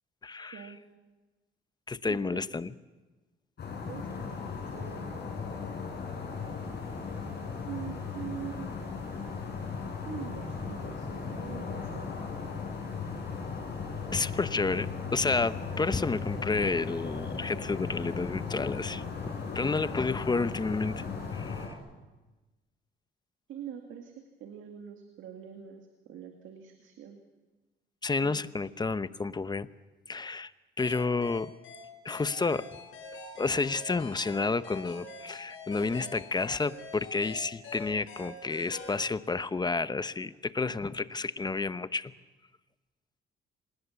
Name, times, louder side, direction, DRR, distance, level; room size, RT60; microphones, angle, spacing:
voice 1, 0.2-0.7 1.9-2.7 14.1-21.0 21.3-21.8 28.0-29.7 30.1-30.5 30.8-31.5 32.0-32.7 33.4-42.1, left 4 dB, 20° left, 15 dB, 0.8 m, -30 dB
voice 2, 2.0-2.5 3.8-5.3 7.6-8.7 10.1-12.1 23.5-27.2 28.2-28.5, right 9 dB, 80° right, 4 dB, 2.0 m, -44 dB
sound 1, 3.6-21.7, left 5 dB, 55° left, 6.8 m, -37 dB
sound 2, 4.1-21.7, right 1 dB, 10° right, 4.8 m, -52 dB
sound 3, 30.8-39.1, left 3 dB, 80° left, 7.7 m, -45 dB
26.0 x 19.5 x 7.0 m, 1.2 s
cardioid pair, 90°, 20 cm